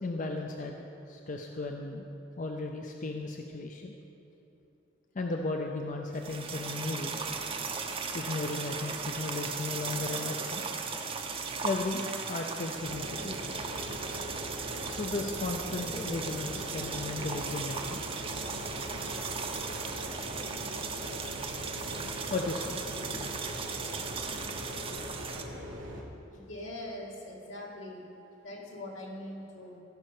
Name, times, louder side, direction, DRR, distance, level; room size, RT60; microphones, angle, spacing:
voice 1, 0.0-0.8 1.1-2.0 2.4-4.0 5.1-7.3 8.1-10.6 11.6-12.0 12.3-13.4 14.9-18.0 22.3-22.8, left 3 dB, 40° left, 3 dB, 0.5 m, -35 dB
sound 1, 6.1-25.4, right 5 dB, 30° right, 0.7 m, -37 dB
sound 2, 12.8-26.0, equal, 70° right, 1.5 m, -42 dB
voice 2, 26.3-28.1 28.4-29.8, left 1 dB, 80° left, -4 dB, 2.5 m, -42 dB
15.0 x 5.4 x 6.5 m, 2.9 s
head